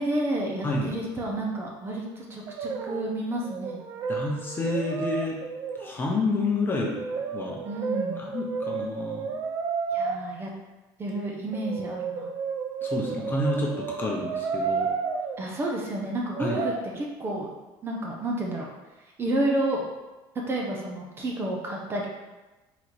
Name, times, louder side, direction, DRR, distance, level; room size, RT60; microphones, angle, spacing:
voice 1, 0.0-3.8 7.6-8.2 9.9-10.5 11.0-12.3 15.4-17.5 17.8-18.7 19.2-19.9 20.5-22.1, right 1 dB, 25° right, -1 dB, 0.8 m, -30 dB
voice 2, 0.6-1.0 4.1-5.4 5.8-7.6 8.2-9.3 12.8-14.9 16.4-16.6, left 2 dB, 25° left, -2 dB, 0.8 m, -29 dB
Brass instrument, 2.5-3.2 3.4-6.0 7.0-10.2 11.5-15.4 16.3-16.8, right 5 dB, 45° right, 0.4 m, -31 dB
4.0 x 2.8 x 4.6 m, 1.1 s
cardioid pair, 130°, 9 cm